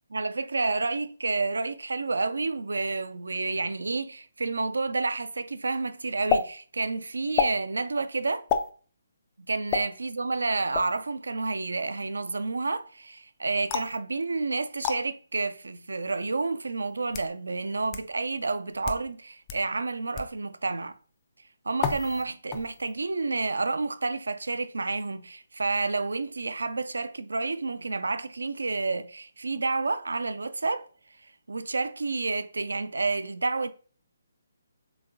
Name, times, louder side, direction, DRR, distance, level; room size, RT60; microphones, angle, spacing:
voice 1, 0.1-8.5 9.5-20.9 21.7-30.9 31.5-33.7, right 3 dB, 65° right, 0.3 m, -30 dB
sound 1, 6.3-6.4 7.3-7.6 8.5-8.7 9.7-9.8 10.7-11.0 13.7-14.0 14.8-15.0 15.9-16.0 16.9-17.3 17.9-18.0 18.7-19.0 19.5-19.6 20.1-20.3 21.8-22.2 22.5-22.9, left 7 dB, 20° left, 0.4 m, -28 dB
3.8 x 3.5 x 2.5 m
figure-of-eight pair, 140°, 0 cm